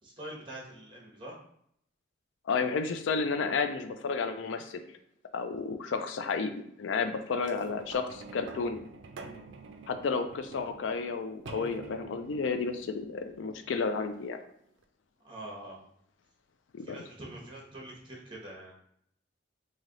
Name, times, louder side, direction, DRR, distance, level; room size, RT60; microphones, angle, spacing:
voice 1, 0.0-1.3 15.2-15.8 16.8-18.7, right 1 dB, 25° right, -3 dB, 1.0 m, -44 dB
voice 2, 2.5-4.8 5.3-6.5 6.8-8.8 9.9-14.4 16.7-17.0, left 5 dB, 80° left, 7 dB, 0.4 m, -32 dB
sound 1, 7.4-14.2 14.8-14.9, right 3 dB, 75° right, 0.4 m, -48 dB
3.2 x 2.7 x 3.8 m, 0.70 s
head